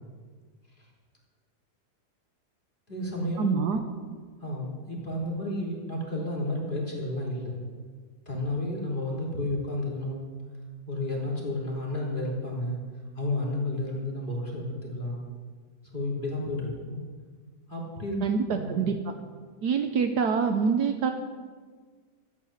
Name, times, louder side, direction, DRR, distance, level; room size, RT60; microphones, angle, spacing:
voice 1, 2.9-3.6 4.4-7.6 8.3-10.3 10.9-12.8 13.2-15.2 15.9-17.0 17.7-18.9, left 1 dB, 30° left, -3 dB, 3.6 m, -31 dB
voice 2, 3.4-3.8 18.2-19.1 19.6-21.1, right 6 dB, 75° right, 6 dB, 1.4 m, -26 dB
13.0 x 9.3 x 8.6 m, 1.5 s
omnidirectional pair, 1.8 m